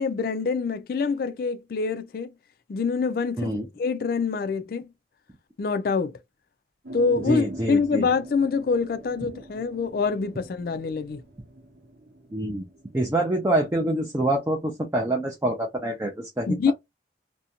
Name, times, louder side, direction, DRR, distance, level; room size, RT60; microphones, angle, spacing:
voice 1, 0.0-2.3 2.7-4.9 5.6-6.2 6.9-11.2 16.5-16.7, left 5 dB, 50° left, 0.3 m, -25 dB
sound 1, 6.8-14.3, right 1 dB, 60° right, 0.7 m, -44 dB
voice 2, 7.1-8.1 12.3-12.7 12.9-16.7, right 1 dB, 15° right, 0.4 m, -26 dB
2.5 x 2.1 x 2.7 m
head